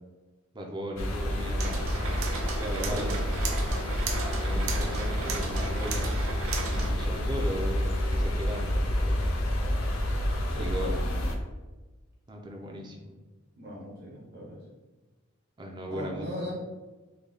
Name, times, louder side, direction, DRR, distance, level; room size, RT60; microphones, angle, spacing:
voice 1, 0.5-1.9 2.6-3.3 4.4-6.1 6.6-9.3 10.5-11.0 12.3-13.1 15.6-16.3, equal, 20° right, 0 dB, 0.4 m, -37 dB
sound 1, 1.0-11.3, equal, 65° left, 0.5 m, -29 dB
sound 2, 1.6-6.9, right 4 dB, 70° right, 0.5 m, -35 dB
voice 2, 2.8-3.2 10.5-10.7 12.7-12.8 13.5-14.6 15.9-16.5, equal, 50° right, -4 dB, 1.1 m, -38 dB
3.3 x 2.2 x 3.8 m, 1.2 s
head